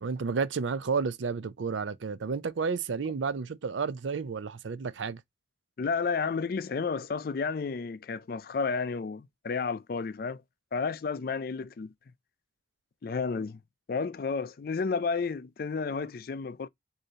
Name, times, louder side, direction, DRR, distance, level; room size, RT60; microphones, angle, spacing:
voice 1, 0.0-5.2, right 5 dB, 80° right, 0.5 m, -31 dB
voice 2, 5.8-10.4 10.7-11.9 13.0-13.6 13.9-16.7, left 5 dB, 50° left, 0.4 m, -31 dB
6.5 x 2.7 x 2.8 m
head